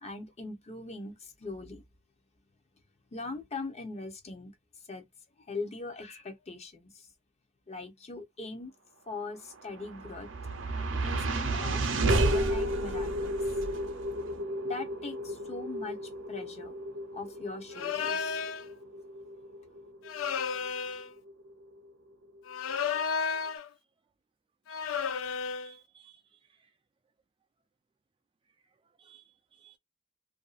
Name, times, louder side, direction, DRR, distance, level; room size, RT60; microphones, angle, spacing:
voice 1, 0.0-1.8 3.1-4.5 4.9-5.0 5.5-7.1 7.7-8.7 9.1-10.3 11.0-11.8 12.1-13.6 14.6-16.0 16.3-16.8 17.1-18.4, left 3 dB, 35° left, 0.7 m, -41 dB
sound 1, 9.5-21.9, right 1 dB, 70° right, 0.7 m, -32 dB
sound 2, 17.7-18.6 20.0-21.1 22.5-23.7 24.7-25.7, left 6 dB, 85° left, 0.3 m, -32 dB
voice 2, 24.7-26.2 29.0-29.2 29.6-29.8, right 9 dB, 25° right, 0.3 m, -57 dB
2.6 x 2.3 x 2.4 m
head